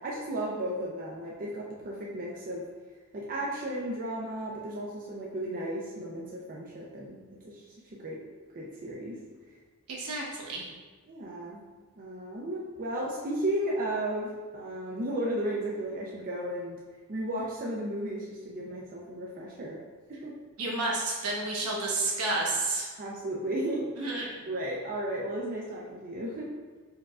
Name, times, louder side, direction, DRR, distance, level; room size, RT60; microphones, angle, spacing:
voice 1, 0.0-2.6 3.1-7.2 7.4-8.2 8.6-9.2 11.1-11.6 12.0-16.8 17.1-19.8 20.1-20.3 23.0-23.9 24.5-26.5, right 1 dB, 40° right, -4 dB, 0.5 m, -34 dB
voice 2, 9.9-10.6 20.6-22.9 24.0-24.3, right 2 dB, 75° right, -3 dB, 1.1 m, -30 dB
4.5 x 4.3 x 2.4 m, 1.4 s
head